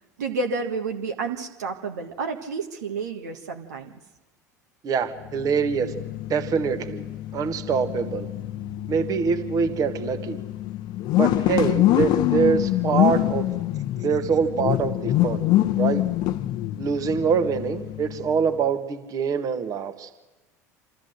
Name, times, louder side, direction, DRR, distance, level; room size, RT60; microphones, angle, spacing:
voice 1, 0.2-3.9, right 4 dB, 75° right, 3 dB, 1.6 m, -30 dB
voice 2, 4.8-5.9 6.3-7.0 7.3-8.3 8.9-10.4 11.1-13.5 14.0-15.4 15.8-16.0 16.8-20.1, right 6 dB, 40° right, 7 dB, 1.7 m, -24 dB
sound 1, 5.2-18.5, left 14 dB, 50° left, 0.8 m, -25 dB
26.5 x 13.5 x 7.9 m, 1.2 s
figure-of-eight pair, 75°, 9 cm